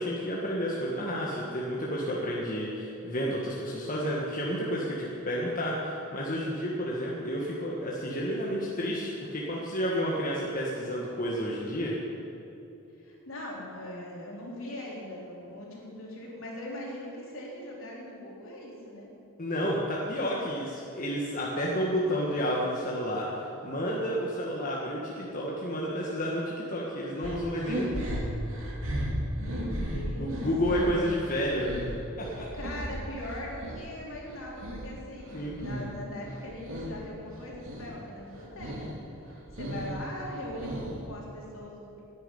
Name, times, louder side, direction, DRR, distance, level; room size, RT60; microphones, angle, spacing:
voice 1, 0.0-11.9 19.4-28.2 30.2-31.7 32.2-32.5 35.3-35.6, equal, 40° left, -4 dB, 1.6 m, -31 dB
voice 2, 13.0-19.1 29.3-30.4 30.7-31.1 32.5-39.0 39.3-42.0, left 1 dB, 65° left, -3 dB, 3.8 m, -41 dB
sound 1, 27.2-33.8 34.2-36.0 36.2-37.0 37.3-37.9 38.3-38.9 39.3-41.1, equal, 65° right, 2.7 m, -35 dB
10.5 x 10.5 x 9.9 m, 2.9 s
head